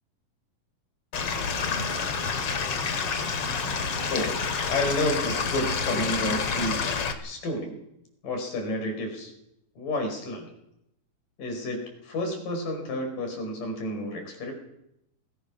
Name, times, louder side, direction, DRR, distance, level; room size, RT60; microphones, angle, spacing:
Stream / Liquid, 1.1-7.1, left 5 dB, 50° left, 2.8 m, -28 dB
voice 1, 4.7-7.8 8.2-9.3 9.8-10.5 11.4-14.5, left 1 dB, 90° left, 4 dB, 6.7 m, -30 dB
25.0 x 20.5 x 6.2 m, 0.82 s
omnidirectional pair, 3.7 m